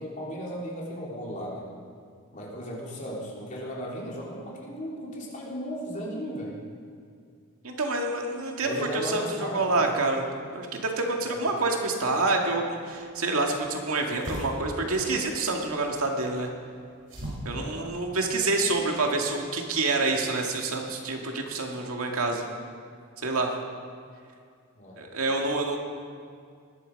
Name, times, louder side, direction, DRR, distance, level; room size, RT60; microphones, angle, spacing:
voice 1, 0.0-1.7 2.3-6.6 8.6-10.0 11.2-11.5 17.5-17.8 24.7-25.0, equal, 35° left, -4 dB, 3.4 m, -36 dB
voice 2, 7.6-16.5 17.4-22.4 23.2-23.5 25.0-25.8, right 3 dB, 80° right, 1 dB, 2.0 m, -27 dB
sound 1, 12.9-19.2, equal, 60° right, 4.9 m, -42 dB
20.0 x 11.5 x 5.3 m, 2.2 s
head